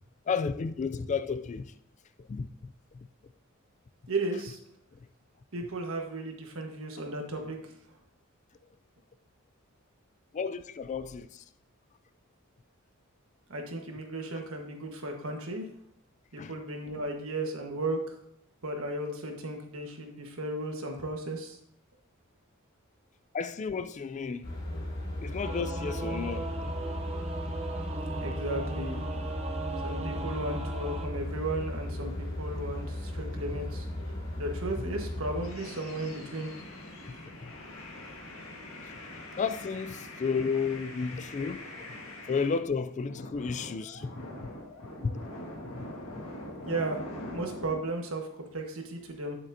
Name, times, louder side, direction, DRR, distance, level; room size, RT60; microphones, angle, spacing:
voice 1, 0.3-1.7 2.3-3.1 10.3-11.4 16.4-16.5 23.3-24.5 25.2-26.5 37.4-37.5 39.4-41.7 42.3-44.5 45.0-45.3 45.6-45.9 46.1-46.2, left 5 dB, 35° left, 0.3 m, -32 dB
voice 2, 4.1-4.6 5.5-7.6 13.5-15.7 16.3-18.1 18.6-21.6 28.2-29.0 29.8-33.9 34.4-36.5 46.6-47.0 47.3-49.4, right 2 dB, 70° right, 1.4 m, -35 dB
sound 1, 24.4-35.5, left 1 dB, 65° left, 3.1 m, -36 dB
Singing / Musical instrument, 25.4-31.1, right 3 dB, 30° right, 0.6 m, -38 dB
sound 2, 35.4-42.6 43.0-47.8, left 1 dB, 80° left, 1.6 m, -43 dB
9.0 x 7.6 x 2.7 m
head